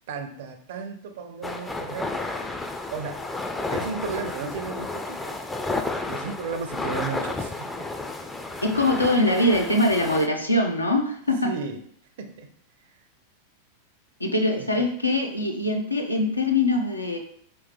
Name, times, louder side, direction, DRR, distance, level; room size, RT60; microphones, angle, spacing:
voice 1, 0.1-2.1 2.9-3.2 3.7-5.4 6.1-7.7 11.4-11.8 12.2-12.5 14.6-14.9, right 5 dB, 55° right, 8 dB, 0.5 m, -34 dB
sound 1, 1.4-10.3, left 2 dB, 10° left, 0.4 m, -32 dB
voice 2, 8.6-11.5 14.2-17.2, left 1 dB, 85° left, 3 dB, 0.6 m, -23 dB
4.7 x 3.0 x 3.5 m, 0.63 s
figure-of-eight pair, 90°, 0 cm